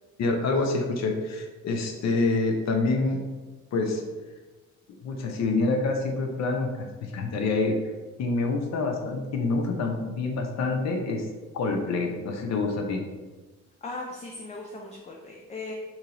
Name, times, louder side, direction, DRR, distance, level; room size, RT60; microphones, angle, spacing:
voice 1, 0.2-3.2 3.7-4.0 5.0-7.8 8.2-11.3 11.5-13.0, left 3 dB, 60° left, 3 dB, 0.7 m, -27 dB
voice 2, 13.8-15.7, left 2 dB, 25° left, 0 dB, 0.4 m, -38 dB
2.9 x 2.7 x 3.9 m, 1.2 s
cardioid pair, 90°, 30 cm